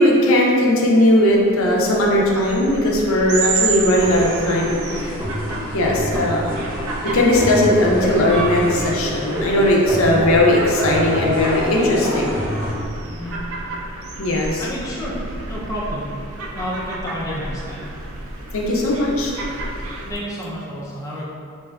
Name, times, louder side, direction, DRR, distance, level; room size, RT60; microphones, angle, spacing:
voice 1, 0.0-5.2 5.7-6.5 7.1-12.4 14.2-14.7 18.5-19.3, left 1 dB, 75° left, -2 dB, 0.5 m, -18 dB
sound 1, 1.3-20.2, right 3 dB, 90° right, 0.4 m, -31 dB
sound 2, 4.0-12.7, equal, 40° right, 0.9 m, -27 dB
voice 2, 13.1-13.4 14.6-15.1 15.5-16.0 16.5-17.9 20.1-21.3, equal, 15° left, -8 dB, 0.5 m, -30 dB
3.3 x 2.6 x 2.3 m, 2.4 s
head